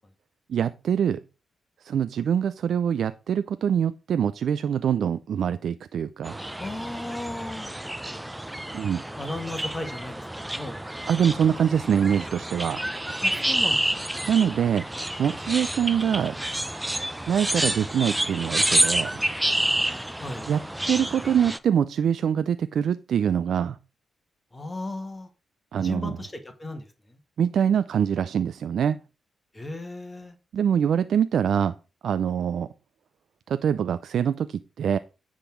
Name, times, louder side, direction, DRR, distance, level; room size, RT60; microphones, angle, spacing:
voice 1, 0.5-1.2 1.8-6.4 8.7-9.0 11.1-12.8 14.3-14.8 15.2-16.3 17.3-19.2 20.5-23.8 25.7-26.2 27.4-29.0 30.5-31.7 32.0-32.7 33.5-35.0, right 8 dB, 75° right, 13 dB, 0.4 m, -24 dB
sound 1, 6.2-21.6, right 1 dB, 10° right, 0.7 m, -29 dB
voice 2, 6.6-7.7 9.2-10.8 11.2-11.6 13.2-14.2 20.2-20.5 24.5-25.3 25.7-27.2 29.5-30.4, left 2 dB, 25° left, 6 dB, 1.8 m, -36 dB
9.9 x 3.8 x 6.2 m, 0.31 s
supercardioid pair, 55°, 0 cm